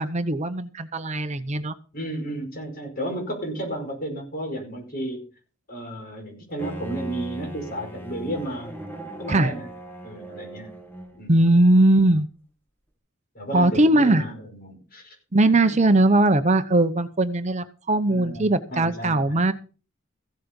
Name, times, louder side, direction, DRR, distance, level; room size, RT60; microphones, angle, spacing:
voice 1, 0.0-1.7 9.3-9.5 11.3-12.3 13.5-14.2 15.3-19.5, right 2 dB, 35° right, 10 dB, 0.8 m, -20 dB
voice 2, 1.9-5.2 5.7-8.8 9.2-9.7 10.0-10.7 11.1-11.5 13.4-15.2 15.4-15.7 18.1-19.4, right 1 dB, 45° left, 3 dB, 5.2 m, -33 dB
Bowed string instrument, 6.6-11.4, right 1 dB, 10° left, 1.9 m, -38 dB
15.5 x 8.4 x 5.3 m, 0.37 s
head